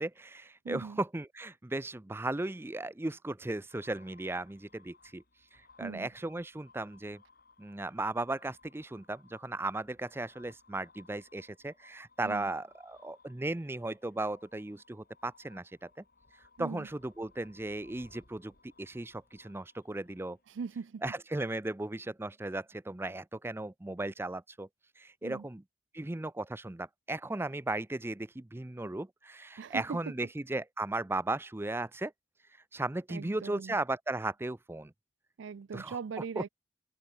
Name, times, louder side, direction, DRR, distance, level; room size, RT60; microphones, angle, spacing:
voice 1, 0.0-5.2 5.5-7.2 7.6-15.9 16.6-18.5 18.8-20.4 21.0-24.7 25.0-25.6 25.9-32.1 32.7-34.9 35.7-36.4, right 2 dB, 15° right, 0.5 m, -36 dB
voice 2, 0.6-1.0 5.8-6.1 12.2-12.5 16.6-16.9 20.5-21.0 25.2-25.5 29.6-30.0 33.1-33.8 35.4-36.5, right 5 dB, 85° right, 0.4 m, -40 dB
sound 1, 3.7-20.7, left 4 dB, 55° left, 7.0 m, -63 dB
head